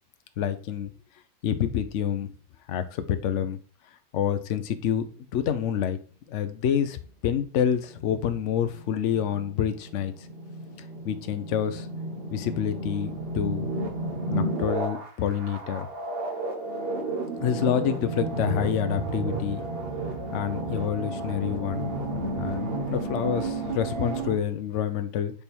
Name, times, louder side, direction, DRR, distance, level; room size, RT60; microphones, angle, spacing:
voice 1, 0.4-0.9 1.4-2.3 2.7-3.6 4.1-5.1 5.3-6.0 6.3-10.3 11.0-11.9 12.3-13.7 14.3-15.9 17.4-19.6 20.3-21.9 22.4-25.3, left 9 dB, 70° left, 10 dB, 0.7 m, -27 dB
sound 1, 7.9-24.4, right 2 dB, 40° right, 0.9 m, -32 dB
6.8 x 3.5 x 4.4 m, 0.39 s
omnidirectional pair, 2.0 m